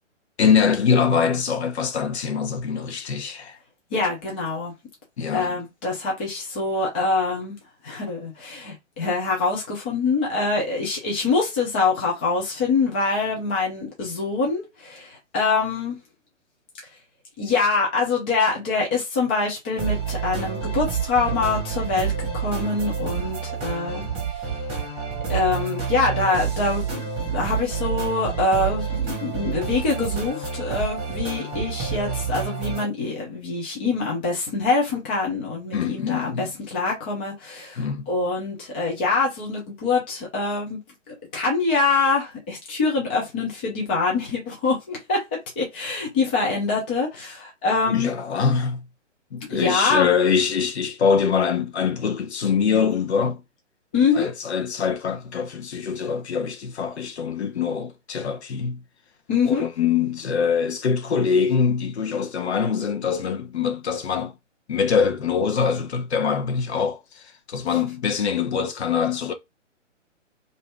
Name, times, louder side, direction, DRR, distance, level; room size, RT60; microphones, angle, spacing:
voice 1, 0.4-3.6 5.2-5.6 35.7-36.5 37.8-38.1 47.9-48.8 49.3-53.4 54.1-58.8 59.5-64.3 64.7-67.2 67.5-69.3, left 6 dB, 60° left, 0.9 m, -23 dB
voice 2, 3.9-4.7 5.3-7.6 7.8-16.0 17.4-24.0 25.3-27.0 27.3-37.8 38.1-40.8 41.1-48.1 49.5-50.1 53.9-54.3 59.3-59.7, left 4 dB, 10° left, 0.4 m, -24 dB
sound 1, 19.8-32.9, right 6 dB, 15° right, 1.1 m, -28 dB
2.7 x 2.6 x 3.3 m
figure-of-eight pair, 130°, 38 cm